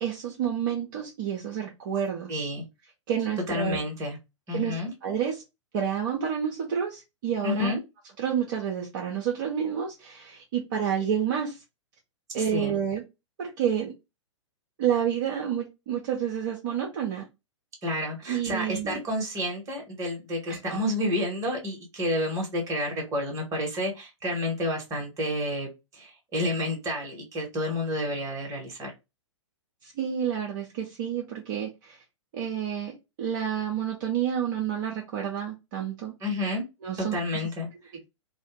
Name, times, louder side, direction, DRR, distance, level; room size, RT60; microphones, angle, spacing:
voice 1, 0.0-2.4 3.1-3.8 4.5-4.7 5.0-5.4 5.7-7.7 8.2-11.6 12.3-13.0 13.4-13.9 14.8-17.2 18.3-19.0 20.5-20.8 29.8-32.0 32.3-32.9 33.2-36.1 36.8-37.2, right 8 dB, 40° right, -1 dB, 0.6 m, -29 dB
voice 2, 2.3-2.6 3.5-4.2 4.5-4.9 7.4-7.8 12.4-12.8 17.8-28.9 36.2-36.6 37.0-37.7, left 1 dB, 20° right, 1 dB, 1.0 m, -30 dB
2.5 x 2.1 x 2.9 m, 0.24 s
figure-of-eight pair, 110°, 16 cm